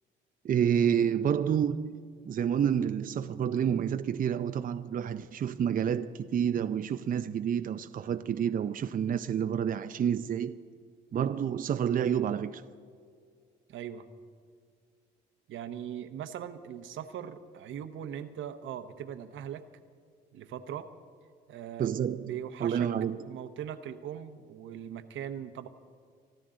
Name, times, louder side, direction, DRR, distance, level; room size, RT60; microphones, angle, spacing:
voice 1, 0.4-10.5 11.1-12.6 21.8-22.3 22.6-23.2, right 8 dB, 45° right, 0.5 m, -29 dB
voice 2, 13.7-14.1 15.5-19.6 20.3-20.9 21.5-22.9 23.2-25.7, right 9 dB, 75° right, 0.9 m, -40 dB
24.5 x 12.5 x 3.8 m
cardioid pair, 90°, 20 cm